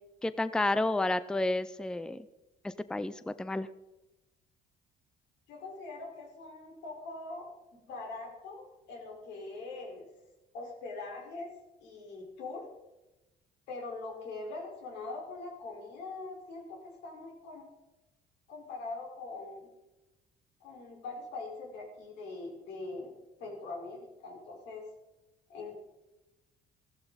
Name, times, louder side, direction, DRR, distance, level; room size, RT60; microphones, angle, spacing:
voice 1, 0.2-2.2 2.6-3.7, left 2 dB, 5° left, 14 dB, 0.5 m, -31 dB
voice 2, 5.5-10.1 10.5-11.5 11.8-12.7 13.7-17.7 18.5-19.7 20.6-23.1 23.4-24.9 25.5-25.8, left 3 dB, 85° left, 0 dB, 4.7 m, -42 dB
15.0 x 14.0 x 4.1 m, 1.0 s
cardioid pair, 110°, 17 cm